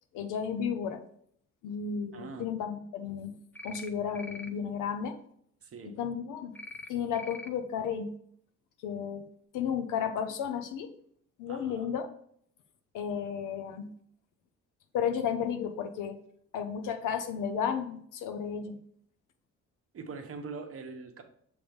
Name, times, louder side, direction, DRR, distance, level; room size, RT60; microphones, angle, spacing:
voice 1, 0.1-1.0 1.6-3.4 3.6-5.2 5.9-6.5 6.9-8.1 8.8-9.3 9.5-10.9 11.4-12.1 12.9-13.9 14.9-16.2 16.5-18.8, left 7 dB, 90° left, 7 dB, 0.8 m, -33 dB
voice 2, 2.1-2.5 5.6-6.0 11.5-11.9 19.9-21.2, right 4 dB, 50° right, 5 dB, 1.0 m, -43 dB
sound 1, 3.5-3.9 4.1-4.5 6.5-6.9 7.1-7.5, left 2 dB, 5° left, 0.5 m, -43 dB
6.2 x 3.4 x 5.1 m, 0.65 s
cardioid pair, 90°, 30 cm